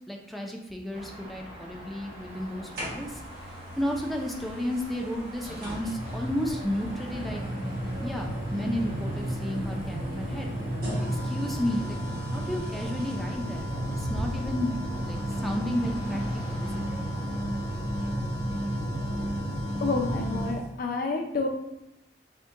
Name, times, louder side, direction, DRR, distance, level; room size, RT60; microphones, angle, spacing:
voice 1, 0.1-3.2 3.8-7.4 8.0-10.5 11.2-14.7 15.0-17.0, left 1 dB, ahead, 1 dB, 0.4 m, -33 dB
Car passing by / Traffic noise roadway noise / Engine, 0.9-18.0, equal, 35° right, 0.9 m, -45 dB
sound 1, 2.7-3.4 4.7-4.8 5.6-20.6, equal, 55° right, 1.1 m, -32 dB
voice 2, 19.8-21.5, left 3 dB, 55° left, 2 dB, 0.5 m, -29 dB
3.6 x 2.2 x 3.6 m, 0.89 s
head